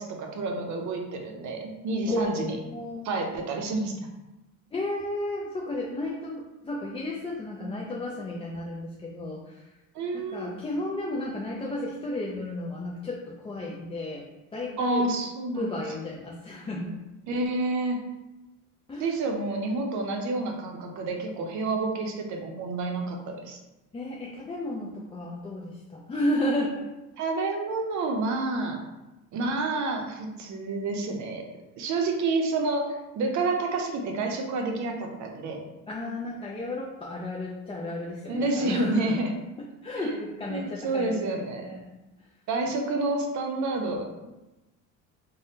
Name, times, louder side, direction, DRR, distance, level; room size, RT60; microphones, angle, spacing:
voice 1, 0.0-2.6 3.0-4.0 9.9-10.5 14.8-15.8 17.3-18.0 19.0-23.6 27.2-28.8 29.3-31.5 31.8-35.6 38.3-39.3 40.0-40.2 40.5-41.8 42.5-44.3, right 3 dB, 55° right, 2 dB, 0.7 m, -29 dB
voice 2, 2.1-3.1 4.7-9.6 10.1-14.2 14.5-15.1 15.5-17.0 18.9-19.2 23.9-26.9 35.9-39.2 39.6-42.0, left 1 dB, 15° left, -4 dB, 0.4 m, -33 dB
3.4 x 2.2 x 2.7 m, 1.0 s
supercardioid pair, 95°, 34 cm